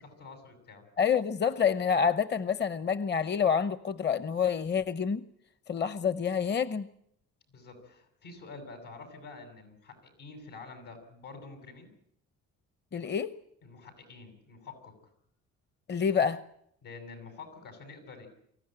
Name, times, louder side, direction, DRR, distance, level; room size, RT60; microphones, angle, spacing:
voice 1, 0.2-0.9 7.5-11.9 13.6-15.0 16.8-18.3, left 4 dB, 90° left, 6 dB, 7.0 m, -47 dB
voice 2, 1.0-5.2 5.7-6.9 12.9-13.3 15.9-16.4, left 7 dB, 35° left, 15 dB, 0.8 m, -27 dB
24.5 x 15.0 x 9.0 m, 0.72 s
cardioid pair, 90°, 30 cm